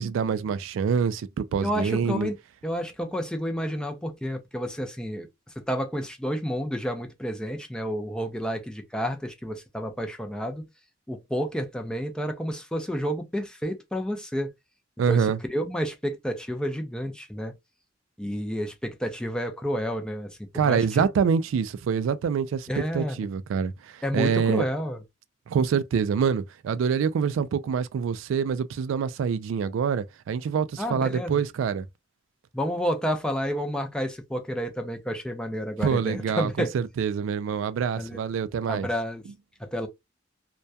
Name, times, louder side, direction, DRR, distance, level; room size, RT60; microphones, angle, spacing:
voice 1, 0.0-2.3 15.0-15.4 20.5-24.6 25.5-31.8 35.8-38.9, right 6 dB, 90° right, 0.3 m, -26 dB
voice 2, 1.6-2.3 2.6-5.3 5.7-10.6 11.1-14.5 15.1-17.5 18.2-21.0 22.7-23.3 24.0-25.0 30.8-31.4 32.5-36.7 38.0-38.2 38.7-39.2 39.6-39.9, equal, 5° left, 0.4 m, -30 dB
2.2 x 2.2 x 2.6 m
head